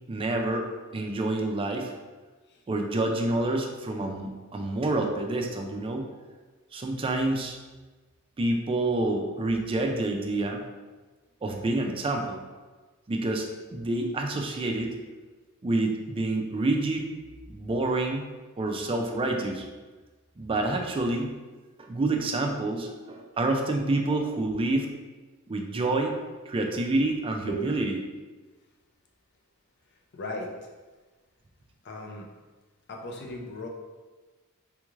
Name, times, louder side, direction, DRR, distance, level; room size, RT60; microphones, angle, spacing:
voice 1, 0.1-0.7 0.9-1.9 2.7-6.1 6.7-7.6 8.4-10.6 11.4-12.4 13.1-15.0 15.6-17.1 17.5-18.3 18.6-19.7 20.4-21.3 21.8-24.9 25.5-26.2 26.5-28.0, right 2 dB, 25° right, 2 dB, 0.3 m, -28 dB
voice 2, 27.5-27.8 30.1-30.7 31.8-32.3 32.9-33.7, equal, 50° left, 1 dB, 0.5 m, -37 dB
3.4 x 2.4 x 3.0 m, 1.3 s
head